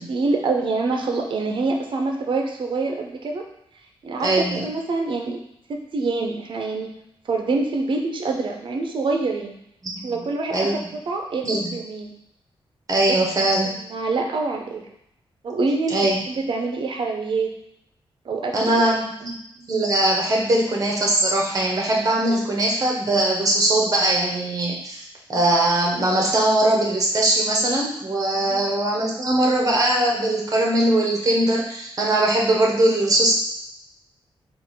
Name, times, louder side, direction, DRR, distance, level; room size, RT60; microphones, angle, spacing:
voice 1, 0.1-3.5 4.0-5.4 5.7-6.9 7.3-9.6 10.0-12.1 13.6-14.9 15.4-17.5 18.2-19.0 28.3-28.6, right 3 dB, 55° right, 2 dB, 0.7 m, -26 dB
voice 2, 4.2-4.7 9.8-10.0 10.5-10.9 11.4-11.7 12.9-13.7 15.9-16.2 18.5-25.0 25.3-33.3, right 1 dB, 40° right, -1 dB, 1.0 m, -21 dB
3.7 x 2.5 x 4.6 m, 0.76 s
wide cardioid pair, 125°, 10 cm